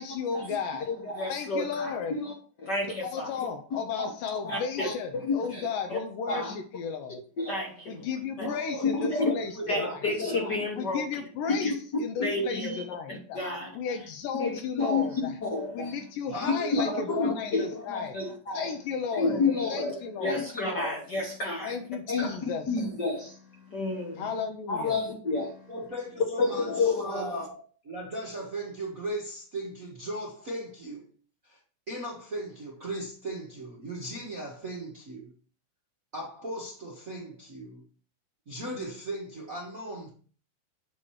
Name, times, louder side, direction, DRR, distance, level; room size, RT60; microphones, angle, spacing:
voice 1, 0.0-0.9 1.3-2.1 3.0-7.2 7.9-10.0 10.8-13.4 13.7-15.4 15.7-18.1 18.5-19.4 19.7-20.5 21.6-22.7 24.2-25.0, left 6 dB, 85° left, 2.4 m, -34 dB
voice 2, 0.9-2.3 2.6-3.3 3.7-4.1 4.4-6.0 6.3-6.5 7.4-8.1 8.4-8.5 8.9-9.3 9.7-11.0 11.6-11.7 12.2-12.8 13.1-13.7 14.4-15.1 15.4-15.9 16.7-18.8 19.1-21.8 22.1-24.2 24.7-25.7 26.4-27.3, left 3 dB, 55° left, 1.2 m, -30 dB
voice 3, 8.4-10.0 16.3-17.2 25.7-31.1 31.4-31.6 31.9-35.3 36.1-37.8 38.5-40.1, right 1 dB, 60° right, 0.8 m, -37 dB
8.7 x 2.9 x 6.3 m
omnidirectional pair, 3.9 m